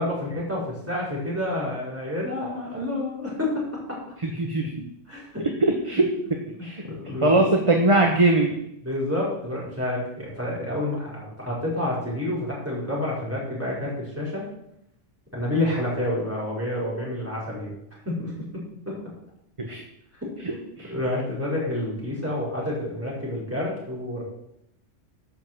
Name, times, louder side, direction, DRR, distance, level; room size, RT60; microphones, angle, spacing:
voice 1, 0.0-3.6 5.1-5.5 5.9-7.4 8.8-14.5 15.3-17.7 18.0-18.9 20.2-20.6 20.9-24.2, left 1 dB, 10° right, -6 dB, 5.0 m, -29 dB
voice 2, 4.2-4.7 5.6-6.1 6.6-6.8 7.2-8.6 19.6-19.8 20.8-20.9, right 2 dB, 25° right, 2 dB, 1.1 m, -20 dB
11.5 x 5.5 x 7.6 m, 0.78 s
omnidirectional pair, 1.3 m